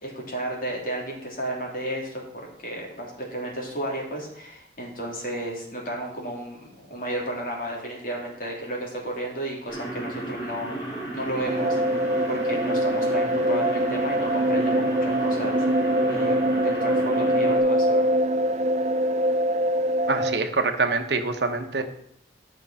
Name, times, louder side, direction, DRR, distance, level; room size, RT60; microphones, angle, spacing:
voice 1, 0.0-10.7 11.1-11.8 12.3-15.6 16.1-18.1, right 1 dB, 50° left, -2 dB, 3.1 m, -33 dB
sound 1, 9.7-17.6, right 2 dB, 25° left, 4.5 m, -33 dB
sound 2, 11.5-20.4, right 1 dB, 40° right, 0.4 m, -23 dB
voice 2, 20.1-21.8, right 4 dB, 75° right, 7 dB, 1.1 m, -25 dB
12.0 x 6.2 x 5.6 m, 0.73 s
head